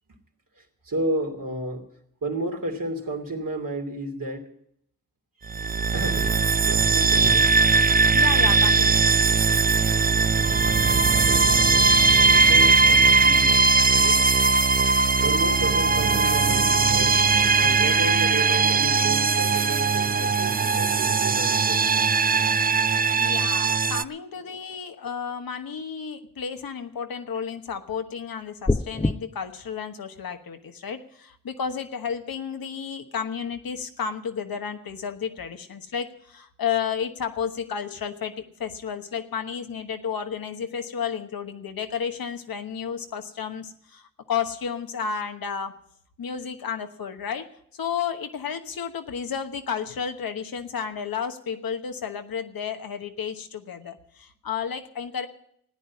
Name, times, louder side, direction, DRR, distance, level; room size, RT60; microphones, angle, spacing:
voice 1, 0.6-1.9 2.2-4.5 5.9-6.3 6.7-7.5 10.6-11.8 12.2-13.6 13.9-14.3 15.2-17.2 17.6-22.1 24.3-24.6, right 1 dB, 65° right, 2 dB, 3.0 m, -32 dB
sound 1, 5.5-24.0, right 4 dB, 25° right, 0.5 m, -20 dB
voice 2, 8.1-9.4 23.2-45.8 46.2-47.5 47.8-55.3, left 7 dB, 75° left, 6 dB, 1.2 m, -32 dB
sound 2, 28.6-29.1, left 2 dB, 15° left, 0.7 m, -23 dB
14.5 x 9.5 x 8.3 m, 0.70 s
cardioid pair, 40°, 35 cm